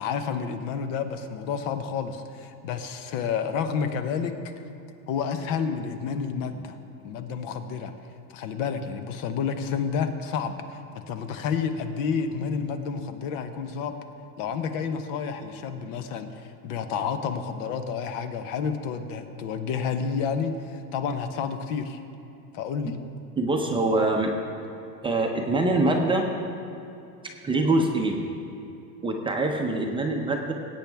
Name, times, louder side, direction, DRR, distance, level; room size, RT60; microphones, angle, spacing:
voice 1, 0.0-4.3 5.1-6.8 7.0-7.9 8.3-14.0 14.4-22.0 22.5-22.9, left 6 dB, 55° left, 8 dB, 1.0 m, -30 dB
voice 2, 23.4-24.3 25.0-26.3 27.4-28.2 29.0-30.5, right 2 dB, 10° right, 1 dB, 0.7 m, -24 dB
20.0 x 8.7 x 3.5 m, 2.8 s
supercardioid pair, 145°, 45 cm